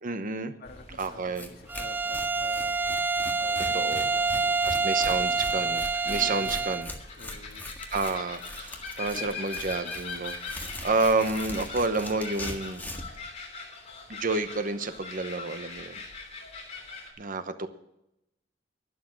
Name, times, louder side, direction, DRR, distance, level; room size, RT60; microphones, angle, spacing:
voice 1, 0.0-0.5 1.0-1.5 3.7-4.0 4.6-6.9 7.9-12.8 14.1-16.0 17.2-17.7, right 3 dB, 45° right, 10 dB, 1.0 m, -30 dB
voice 2, 0.6-2.8 3.4-5.7 6.1-6.8 7.2-7.6 9.1-9.4, left 2 dB, 55° left, 4 dB, 1.9 m, -48 dB
sound 1, 0.6-17.1, left 4 dB, 35° left, 3.2 m, -42 dB
Tearing, 1.0-1.1 1.4-1.5 1.7-13.2, left 1 dB, 10° left, 1.7 m, -41 dB
Bowed string instrument, 1.7-6.9, right 4 dB, 10° right, 0.4 m, -27 dB
12.0 x 11.0 x 6.3 m, 0.84 s
head